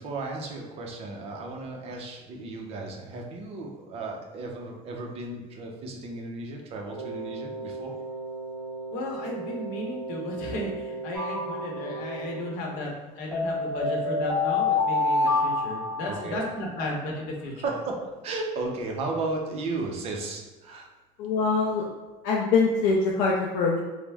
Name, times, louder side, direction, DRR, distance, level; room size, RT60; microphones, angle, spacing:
voice 1, 0.0-7.9 15.7-16.4 17.6-20.9, right 3 dB, 40° right, 0 dB, 0.6 m, -34 dB
Wind instrument woodwind instrument, 6.9-12.7, right 3 dB, 90° right, 0.4 m, -37 dB
voice 2, 8.9-12.9 13.2-17.7, left 1 dB, 65° left, 0 dB, 0.8 m, -34 dB
sound 1, 11.1-12.2 13.3-16.5, left 3 dB, 20° right, 1.2 m, -27 dB
voice 3, 21.2-21.8 22.2-23.8, left 4 dB, 80° left, -2 dB, 0.4 m, -23 dB
3.2 x 2.0 x 3.4 m, 1.2 s
cardioid pair, 150°, 15 cm